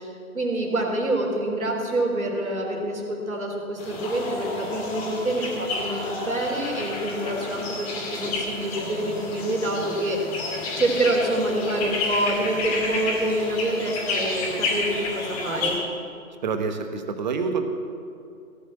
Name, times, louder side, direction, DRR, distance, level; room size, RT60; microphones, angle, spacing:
voice 1, 0.0-10.5 10.8-15.8, right 1 dB, 75° right, 0 dB, 3.8 m, -27 dB
sound 1, 3.8-15.8, left 3 dB, 25° left, 2.7 m, -30 dB
voice 2, 16.4-17.6, right 5 dB, 30° right, 6 dB, 1.2 m, -27 dB
16.5 x 7.6 x 7.5 m, 2.4 s
figure-of-eight pair, 140°, 43 cm